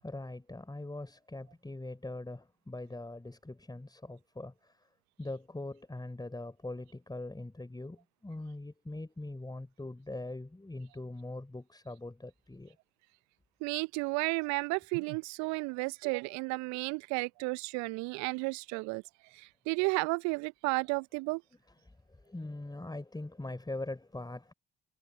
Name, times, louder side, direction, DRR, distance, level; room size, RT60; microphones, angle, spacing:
voice 1, 0.0-4.9 5.2-12.8 21.5-24.5, left 2 dB, 15° left, 4.7 m, -42 dB
voice 2, 13.6-19.0 19.3-21.4, right 28 dB, 65° right, 0.7 m, -33 dB
figure-of-eight pair, 45°, 30 cm